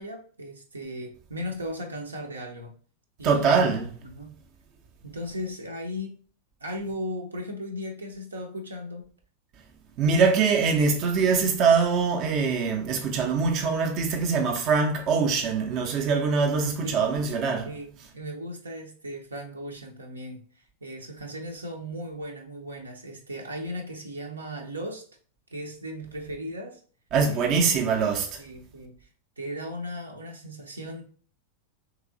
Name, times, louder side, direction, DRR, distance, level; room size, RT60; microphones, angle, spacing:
voice 1, 0.0-2.7 3.2-3.8 4.1-4.3 5.0-6.2 6.6-9.0 16.8-17.2 17.6-20.4 20.8-25.0 25.5-26.8 27.3-28.1 28.4-29.0 29.4-31.0, equal, 75° right, 0.8 m, -37 dB
voice 2, 3.2-3.9 10.0-17.7 27.1-28.4, right 5 dB, 40° right, 0.6 m, -23 dB
3.1 x 3.0 x 3.6 m
figure-of-eight pair, 90°, 0 cm